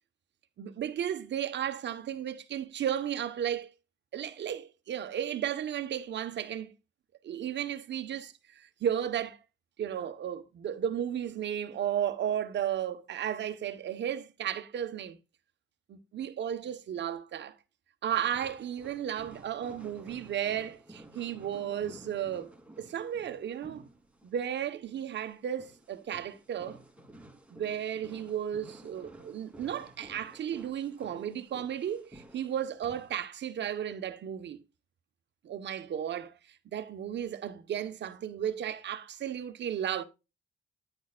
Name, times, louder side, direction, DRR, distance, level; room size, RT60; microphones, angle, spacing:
voice 1, 0.6-3.7 4.1-6.7 7.2-9.4 9.8-15.2 15.9-17.5 18.0-22.5 22.8-23.9 24.2-26.8 27.5-34.6 35.4-36.3 36.6-40.0, right 9 dB, 65° right, 1.3 m, -34 dB
sound 1, 18.3-33.2, right 1 dB, 5° right, 3.3 m, -53 dB
10.0 x 9.4 x 2.5 m
cardioid pair, 90°, 20 cm